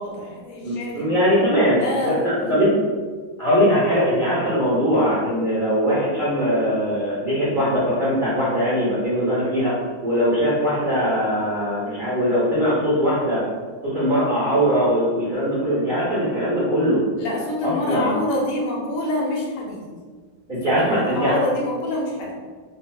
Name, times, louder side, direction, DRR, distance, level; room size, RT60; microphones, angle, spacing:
voice 1, 0.0-1.1 1.7-2.8 17.2-19.8 20.6-22.3, left 1 dB, 80° left, -2 dB, 1.5 m, -27 dB
voice 2, 0.6-1.8 2.0-2.7 3.4-13.4 13.9-17.0 17.6-18.1 20.5-21.3, equal, 70° right, -10 dB, 0.4 m, -21 dB
4.0 x 2.3 x 2.3 m, 1.5 s
omnidirectional pair, 2.2 m